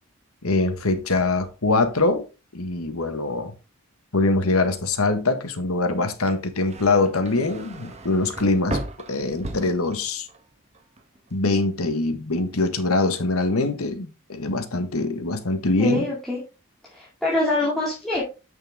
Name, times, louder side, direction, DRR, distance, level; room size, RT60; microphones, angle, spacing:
voice 1, 0.4-2.3 2.5-3.5 4.1-8.8 9.1-10.3 11.3-16.0, left 2 dB, 85° left, 1.5 m, -23 dB
sound 1, 6.1-10.4 10.7-11.3, right 1 dB, 30° right, 1.3 m, -36 dB
voice 2, 15.8-16.4 16.9-18.2, left 2 dB, ahead, 2.4 m, -24 dB
8.5 x 6.5 x 3.6 m
head